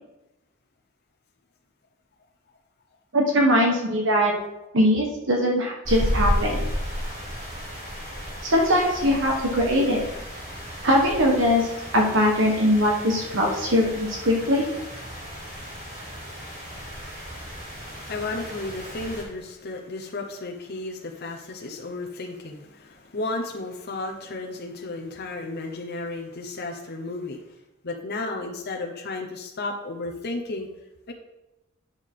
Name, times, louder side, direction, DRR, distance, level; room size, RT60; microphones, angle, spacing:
voice 1, 3.1-4.3 4.7-6.6 8.4-10.0 10.8-11.7 11.9-14.7, equal, 65° right, 0 dB, 1.3 m, -21 dB
sound 1, 5.8-19.2, equal, 35° right, 2.7 m, -33 dB
voice 2, 17.7-27.5 27.8-30.7 31.1-31.2, left 2 dB, 50° left, 1 dB, 0.9 m, -33 dB
9.9 x 6.7 x 3.7 m, 0.97 s
head